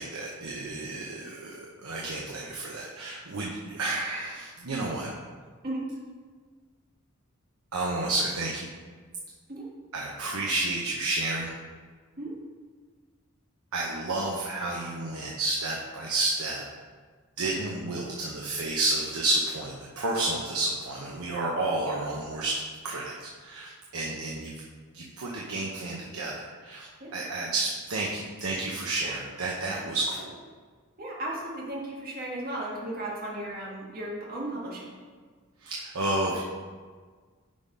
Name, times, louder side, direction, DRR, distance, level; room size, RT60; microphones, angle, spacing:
voice 1, 0.0-5.1 7.7-8.7 9.9-11.5 13.7-16.6 17.4-22.5 22.8-23.1 23.4-24.5 24.9-30.4 35.6-36.4, right 2 dB, 85° right, -3 dB, 0.9 m, -31 dB
voice 2, 31.0-35.0, right 1 dB, 45° right, -4 dB, 1.8 m, -35 dB
8.7 x 3.8 x 5.3 m, 1.5 s
head